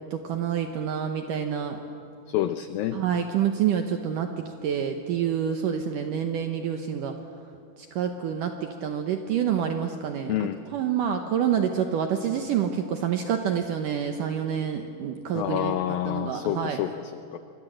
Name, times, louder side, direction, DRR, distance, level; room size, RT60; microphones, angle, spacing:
voice 1, 0.1-1.8 2.9-7.2 7.9-16.8, right 8 dB, 75° right, 5 dB, 2.0 m, -27 dB
voice 2, 2.3-3.0 10.3-10.6 15.3-17.4, left 12 dB, 90° left, 10 dB, 2.0 m, -28 dB
26.5 x 24.0 x 7.7 m, 2.6 s
omnidirectional pair, 5.0 m